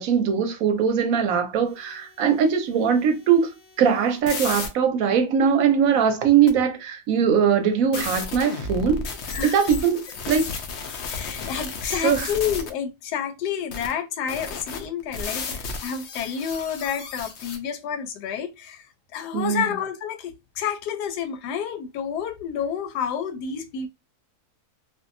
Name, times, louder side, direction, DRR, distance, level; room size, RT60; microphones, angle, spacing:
voice 1, 0.0-9.1 9.4-10.5 12.0-12.3 19.3-19.7, right 7 dB, 70° right, 0.9 m, -21 dB
sound 1, 3.0-4.7 6.5-6.6 7.9-12.7 13.7-13.9 14.3-17.6, left 4 dB, 70° left, 0.6 m, -33 dB
voice 2, 11.1-18.8 19.1-23.9, left 8 dB, 90° left, 1.1 m, -29 dB
2.6 x 2.5 x 2.5 m
omnidirectional pair, 1.7 m